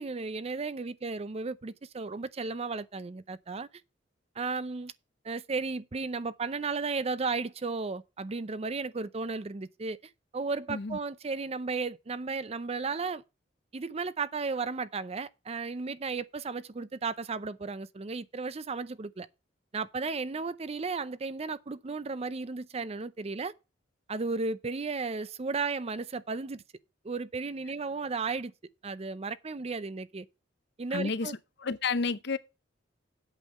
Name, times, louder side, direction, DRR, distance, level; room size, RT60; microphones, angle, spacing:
voice 1, 0.0-3.7 4.4-4.9 5.2-13.2 13.7-19.3 19.7-23.5 24.1-26.6 27.0-28.5 28.8-30.3 30.8-31.3, right 4 dB, 35° right, 0.5 m, -34 dB
voice 2, 30.9-32.4, left 4 dB, 60° left, 0.7 m, -31 dB
8.3 x 5.4 x 6.5 m
head